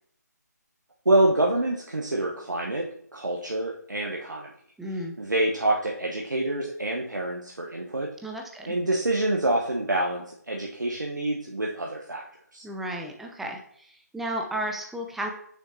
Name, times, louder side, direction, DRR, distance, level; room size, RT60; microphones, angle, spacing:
voice 1, 1.0-2.9 3.1-4.5 5.2-8.1 8.7-12.2 12.5-12.6, right 1 dB, 90° right, -1 dB, 1.0 m, -26 dB
voice 2, 4.8-5.1 8.2-8.8 12.6-15.3, right 1 dB, ahead, 1 dB, 0.4 m, -33 dB
6.3 x 6.2 x 2.7 m, 0.65 s
figure-of-eight pair, 150°, 10 cm